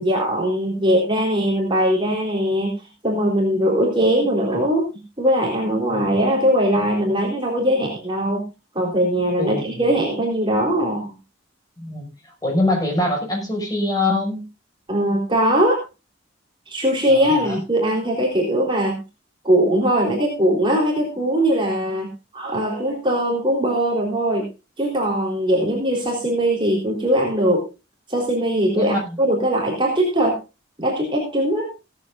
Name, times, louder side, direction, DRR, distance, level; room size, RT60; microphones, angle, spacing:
voice 1, 0.0-4.9 5.2-8.4 8.7-11.1 14.9-15.8 16.7-19.0 19.4-24.5 24.8-27.6 28.1-30.4 30.8-31.7, equal, 25° right, -1 dB, 3.8 m, -20 dB
voice 2, 11.8-14.5 17.1-17.6 25.6-25.7 28.7-29.2, left 1 dB, 20° left, 1 dB, 6.0 m, -24 dB
17.0 x 14.0 x 2.5 m, 0.28 s
head